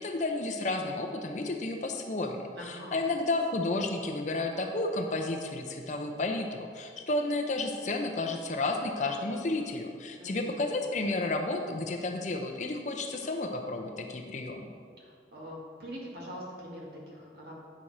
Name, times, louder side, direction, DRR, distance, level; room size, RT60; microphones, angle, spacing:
voice 1, 0.0-14.7, left 2 dB, 40° left, 3 dB, 0.6 m, -32 dB
voice 2, 2.5-3.0 10.2-10.6 15.0-17.6, equal, 60° right, -4 dB, 1.9 m, -43 dB
8.9 x 6.3 x 4.2 m, 2.1 s
head